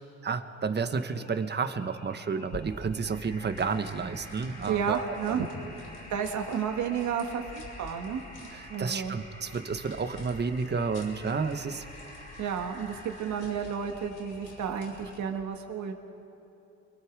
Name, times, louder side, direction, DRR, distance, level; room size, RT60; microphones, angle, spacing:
voice 1, 0.0-5.4 8.5-11.8, right 5 dB, 35° right, 9 dB, 1.3 m, -31 dB
sound 1, 0.8-15.4, left 1 dB, 25° left, 3.5 m, -50 dB
sound 2, 2.4-15.3, left 2 dB, 85° left, 5.4 m, -49 dB
voice 2, 4.7-5.5 6.1-8.2 8.7-9.2 12.4-15.9, right 7 dB, 70° right, 4 dB, 1.9 m, -31 dB
28.5 x 22.0 x 4.8 m, 2.8 s
cardioid pair, 90°, 30 cm